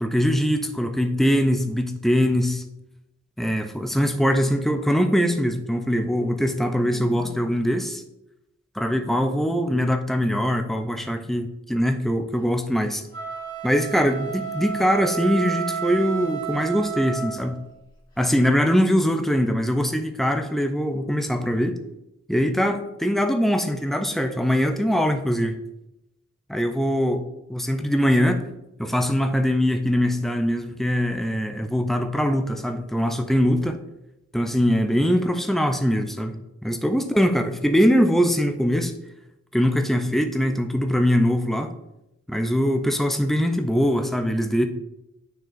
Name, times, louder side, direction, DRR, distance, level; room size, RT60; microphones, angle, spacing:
voice 1, 0.0-2.6 3.4-8.0 8.8-13.0 13.6-17.6 18.2-21.7 22.3-25.5 26.5-27.2 27.5-28.4 28.8-33.8 34.3-38.9 39.5-41.7 42.3-44.7, equal, ahead, 5 dB, 0.3 m, -22 dB
sound 1, 13.0-17.6, right 7 dB, 20° left, 1.5 m, -31 dB
9.2 x 4.4 x 2.5 m, 0.89 s
head